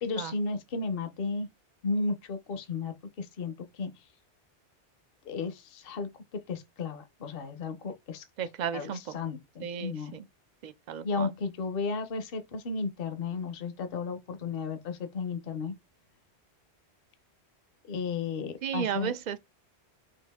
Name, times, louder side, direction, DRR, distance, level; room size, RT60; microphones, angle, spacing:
voice 1, 0.0-1.5 1.8-3.9 5.2-8.2 8.7-10.1 11.0-15.7 17.9-19.1, left 4 dB, 60° left, 0.9 m, -34 dB
voice 2, 8.4-9.1 9.6-10.2 10.6-11.3 18.6-19.4, right 8 dB, 55° right, 0.5 m, -34 dB
5.8 x 2.5 x 3.5 m
omnidirectional pair, 1.1 m